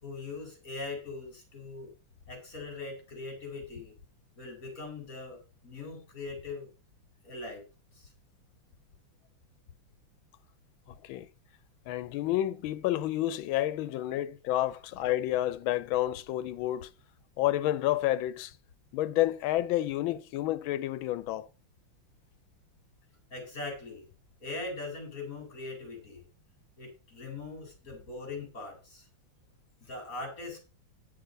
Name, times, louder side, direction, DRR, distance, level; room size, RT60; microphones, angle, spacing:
voice 1, 0.0-1.9 2.2-3.9 4.4-6.7 7.2-7.6 7.9-8.1 23.3-24.1 24.4-26.3 26.8-29.1 29.8-30.6, left 3 dB, 45° left, 4.3 m, -41 dB
voice 2, 10.9-11.3 11.9-16.9 17.4-18.5 18.9-21.5, left 14 dB, 85° left, 1.4 m, -30 dB
9.2 x 6.4 x 5.1 m
omnidirectional pair, 2.1 m